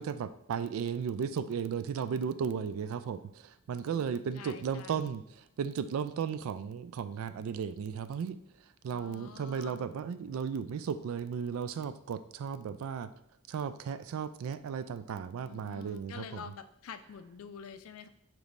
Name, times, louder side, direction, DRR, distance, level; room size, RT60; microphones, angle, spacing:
voice 1, 0.0-13.1 13.5-16.5, right 7 dB, 75° right, 12 dB, 0.3 m, -35 dB
voice 2, 3.8-5.1 8.9-9.9 15.4-18.1, left 6 dB, 75° left, 10 dB, 0.4 m, -48 dB
6.8 x 3.0 x 2.6 m, 0.79 s
head